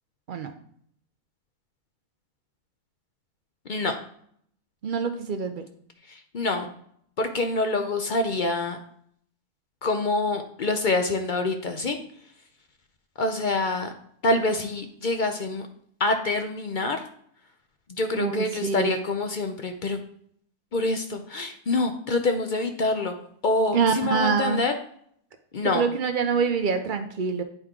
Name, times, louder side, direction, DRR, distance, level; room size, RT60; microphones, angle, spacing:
voice 1, 4.8-5.6 18.1-19.0 23.7-24.6 25.6-27.4, right 5 dB, 85° right, 7 dB, 0.4 m, -25 dB
voice 2, 6.3-6.7 7.2-8.8 9.8-12.0 13.2-13.9 14.2-15.7 16.0-17.0 17.9-20.0 20.7-23.1 23.4-24.7 25.5-25.8, left 2 dB, 55° left, 6 dB, 0.5 m, -26 dB
9.0 x 4.6 x 3.7 m, 0.64 s
omnidirectional pair, 1.5 m